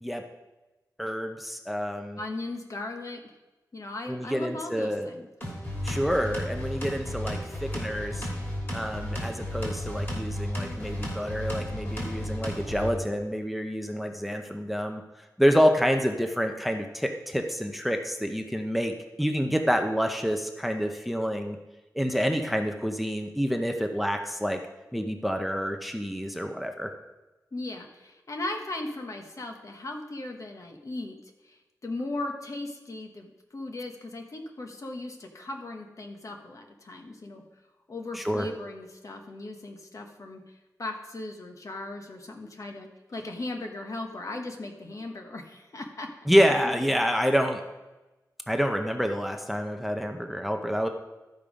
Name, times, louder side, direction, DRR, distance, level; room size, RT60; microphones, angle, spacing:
voice 1, 1.0-2.2 4.1-5.1 5.8-8.3 8.7-15.0 15.4-21.6 21.9-24.6 24.9-26.9 38.1-38.5 46.3-47.6 48.5-50.9, equal, ahead, 5 dB, 0.7 m, -27 dB
voice 2, 2.2-3.2 3.7-5.3 27.5-31.2 31.4-37.4 37.9-40.5 40.8-46.1 46.5-46.8, left 2 dB, 55° left, 3 dB, 1.2 m, -37 dB
sound 1, 5.4-12.9, equal, 35° left, 3.1 m, -33 dB
12.5 x 5.3 x 5.1 m, 1.1 s
wide cardioid pair, 105°, 7 cm